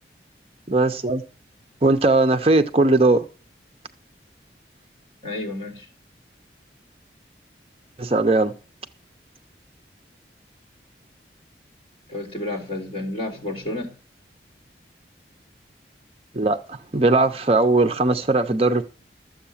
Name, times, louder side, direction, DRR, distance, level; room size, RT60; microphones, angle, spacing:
voice 1, 0.7-1.2 1.8-3.2 8.0-8.5 16.3-18.8, right 2 dB, 35° right, 0.6 m, -19 dB
voice 2, 5.2-5.9 12.1-14.0, left 2 dB, 30° left, 3.9 m, -31 dB
13.0 x 7.7 x 7.2 m
head